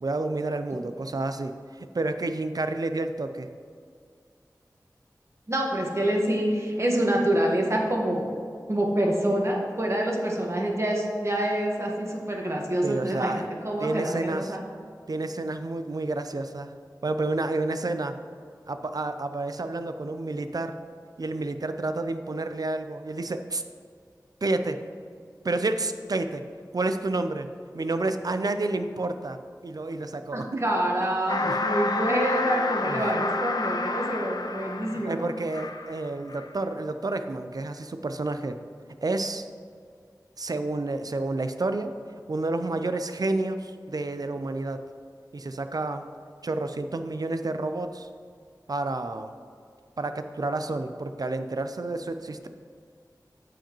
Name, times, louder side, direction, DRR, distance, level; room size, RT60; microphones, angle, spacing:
voice 1, 0.0-1.5 1.8-3.5 12.8-13.5 13.8-14.6 15.1-16.7 17.0-18.2 18.7-20.8 21.2-23.6 24.4-24.8 25.4-26.4 26.7-27.5 27.7-30.6 31.4-31.6 32.8-33.2 35.0-38.6 39.0-39.5 40.4-41.9 42.3-44.8 45.3-46.1 46.4-48.1 48.7-49.3 50.0-52.5, right 2 dB, 60° right, 9 dB, 0.5 m, -30 dB
voice 2, 5.5-8.3 8.7-14.6 30.3-35.2, right 1 dB, 40° right, -1 dB, 1.5 m, -26 dB
sound 1, 31.3-36.0 36.3-36.5, left 3 dB, 70° left, 0.5 m, -29 dB
14.0 x 4.9 x 3.0 m, 2.2 s
wide cardioid pair, 45°, 7 cm